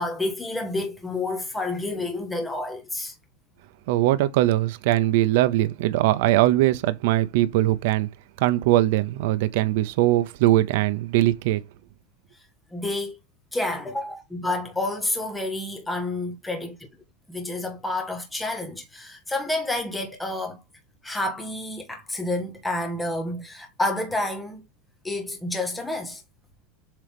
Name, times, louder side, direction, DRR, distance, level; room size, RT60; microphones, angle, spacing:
voice 1, 0.0-3.1 12.7-13.2 13.5-16.8 17.3-20.6 21.0-24.6 25.0-26.2, left 2 dB, 5° left, 1.4 m, -29 dB
voice 2, 3.9-8.1 8.4-11.6, right 15 dB, 60° right, 0.6 m, -21 dB
7.4 x 3.8 x 3.4 m
supercardioid pair, 170°, 0 cm